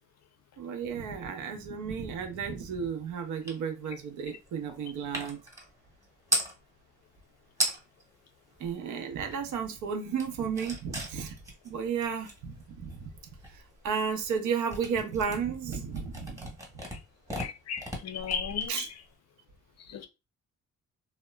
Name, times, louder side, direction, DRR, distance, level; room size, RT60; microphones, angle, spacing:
voice 1, 0.6-5.4 8.6-11.3 11.6-12.5 12.8-13.1 13.5-16.5 18.7-18.8, right 6 dB, 75° right, 0.6 m, -33 dB
sound 1, 3.5-3.6 3.9-6.6 7.2-7.3 7.5-8.1 8.4-9.6 9.9-19.1, right 1 dB, 10° right, 1.0 m, -37 dB
voice 2, 17.4-19.0 19.8-20.1, left 7 dB, 60° left, 0.5 m, -35 dB
2.8 x 2.1 x 2.2 m
cardioid pair, 90°, 30 cm